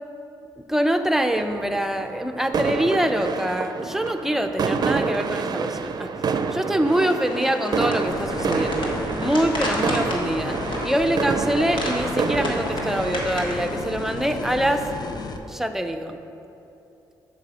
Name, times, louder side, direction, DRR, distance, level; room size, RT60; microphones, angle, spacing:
voice 1, 0.6-6.1 6.5-10.6 10.8-14.8 15.5-16.2, right 1 dB, 5° right, 6 dB, 0.6 m, -24 dB
sound 1, 1.3-15.0, right 5 dB, 50° right, 0.5 m, -28 dB
sound 2, 7.2-13.8, left 1 dB, 65° left, 1.6 m, -32 dB
sound 3, 8.1-15.4, left 3 dB, 50° left, 0.7 m, -34 dB
7.3 x 6.1 x 5.0 m, 2.9 s
cardioid pair, 65°, 9 cm